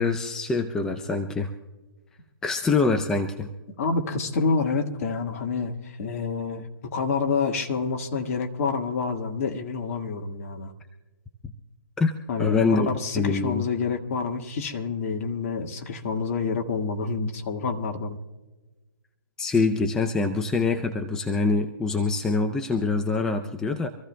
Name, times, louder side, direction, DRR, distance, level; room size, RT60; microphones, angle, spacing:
voice 1, 0.0-1.5 2.4-3.5 12.0-12.1 12.4-12.9 13.1-13.6 19.4-23.9, left 4 dB, 5° left, 5 dB, 0.5 m, -24 dB
voice 2, 3.8-10.7 12.3-18.2, left 4 dB, 40° left, 3 dB, 1.7 m, -28 dB
26.0 x 15.0 x 2.2 m, 1.2 s
hypercardioid pair, 155°, 12 cm